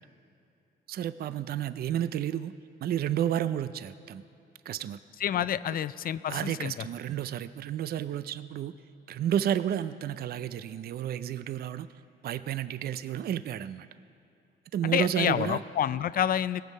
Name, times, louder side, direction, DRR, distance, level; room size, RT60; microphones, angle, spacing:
voice 1, 0.9-2.5 2.8-4.2 4.7-5.0 6.3-8.7 9.1-11.9 12.2-13.9 14.7-15.6, right 10 dB, 50° right, 14 dB, 0.4 m, -31 dB
voice 2, 5.2-6.7 14.8-16.6, left 10 dB, 50° left, 17 dB, 0.4 m, -28 dB
18.0 x 7.3 x 5.4 m, 2.7 s
cardioid pair, 90°, 20 cm